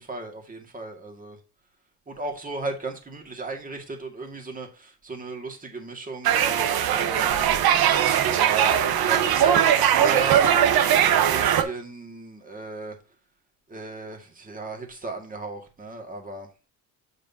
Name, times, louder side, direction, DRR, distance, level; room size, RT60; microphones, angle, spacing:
voice 1, 0.0-1.4 2.1-7.6 8.4-13.0 13.7-16.5, right 3 dB, 20° right, 2.0 m, -35 dB
sound 1, 6.2-11.6, right 10 dB, 60° right, 1.1 m, -20 dB
7.7 x 6.5 x 2.8 m
cardioid pair, 120°, 41 cm